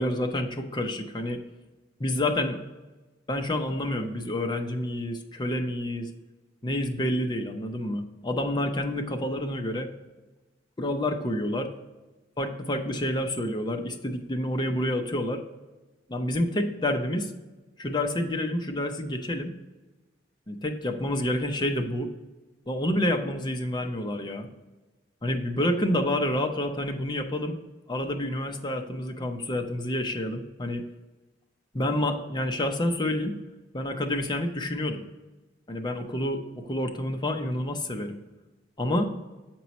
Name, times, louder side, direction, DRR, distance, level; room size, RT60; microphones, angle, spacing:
voice 1, 0.0-1.4 2.0-2.6 3.3-6.1 6.6-9.9 10.8-11.7 12.4-15.4 16.1-17.3 17.8-19.5 20.5-22.1 22.7-24.5 25.2-27.6 27.9-30.8 31.7-33.3 33.7-35.0 35.7-38.2 38.8-39.1, left 1 dB, 25° left, 4 dB, 0.6 m, -28 dB
7.1 x 4.5 x 4.1 m, 1.2 s
head